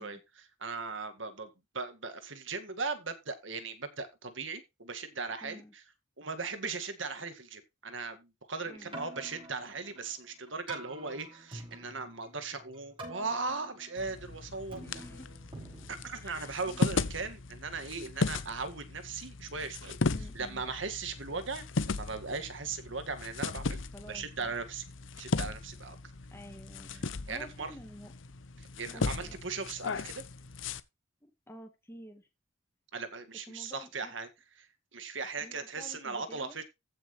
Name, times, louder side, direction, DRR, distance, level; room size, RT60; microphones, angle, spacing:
voice 1, 0.0-5.8 6.2-15.0 15.9-20.0 20.3-24.8 25.2-26.0 27.3-27.7 28.6-30.2 32.9-34.3 34.6-34.7 34.9-36.6, right 4 dB, 65° right, 9 dB, 2.0 m, -38 dB
voice 2, 5.4-5.7 8.7-9.0 14.8-15.3 16.2-16.8 20.1-20.6 23.9-24.6 26.3-28.1 28.9-29.4 31.2-32.3 33.5-34.1 35.4-36.6, equal, 10° left, 6 dB, 2.0 m, -50 dB
Keyboard (musical), 8.8-16.9, right 1 dB, 25° right, 6.6 m, -48 dB
sound 1, 14.0-30.8, left 3 dB, 65° left, 0.7 m, -37 dB
15.0 x 6.3 x 3.2 m, 0.23 s
head